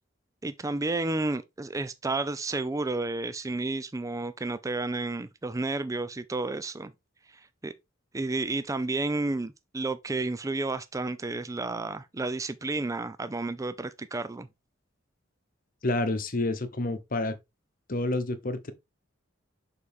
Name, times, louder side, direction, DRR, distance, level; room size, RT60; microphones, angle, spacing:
voice 1, 0.4-6.9 7.3-7.7 8.1-14.5, right 2 dB, 15° right, 0.4 m, -31 dB
voice 2, 15.8-17.4 17.9-18.7, left 2 dB, 45° left, 1.0 m, -29 dB
6.6 x 4.8 x 3.6 m
head